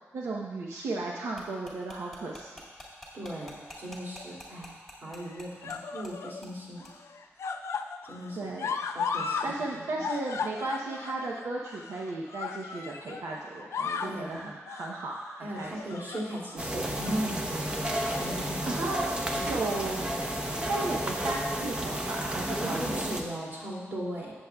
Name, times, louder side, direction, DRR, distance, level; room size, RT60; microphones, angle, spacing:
voice 1, 0.1-2.5 8.4-8.7 9.4-16.0 18.6-20.1 20.5-23.1, right 2 dB, 85° right, -2 dB, 0.8 m, -35 dB
sound 1, 1.4-5.8 6.0-6.1 6.4-6.6 6.8-6.9, equal, 5° right, 2.0 m, -46 dB
voice 2, 3.1-4.7 5.0-6.8 8.1-8.5 8.9-10.1 14.0-14.5 15.4-18.8 19.3-19.5 22.6-24.3, right 1 dB, 50° right, -5 dB, 2.6 m, -37 dB
sound 2, 3.7-4.2 5.1-6.4 6.8-9.5 9.8-13.2 13.6-14.2 14.7-15.0 15.5-16.6 16.9-17.2 17.8-18.3 18.7-18.9 20.0-20.6 21.5-21.6, left 5 dB, 75° left, 0.4 m, -36 dB
sound 3, 16.6-23.2, right 1 dB, 20° right, 0.8 m, -32 dB
16.5 x 7.2 x 2.3 m, 1.3 s
wide cardioid pair, 155°, 5 cm